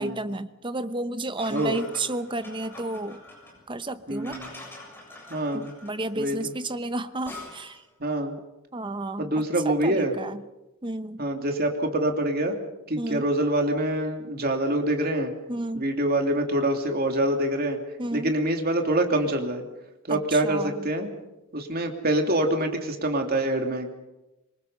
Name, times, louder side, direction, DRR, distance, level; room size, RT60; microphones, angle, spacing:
voice 1, 0.0-3.2 3.7-4.4 5.5-7.8 8.7-10.4 10.8-11.2 13.0-13.3 15.5-15.9 18.0-18.3 20.1-20.8, right 2 dB, 20° right, 11 dB, 0.9 m, -32 dB
sound 1, 1.4-7.9, left 1 dB, 10° left, 7.5 m, -45 dB
voice 2, 4.1-4.5 5.3-5.7 6.1-6.5 8.0-8.4 9.2-10.1 11.2-12.6 12.9-15.3 15.7-17.8 18.1-19.6 20.0-21.1 21.5-23.9, right 1 dB, 45° right, 3 dB, 2.9 m, -25 dB
26.0 x 23.0 x 5.6 m, 0.97 s
head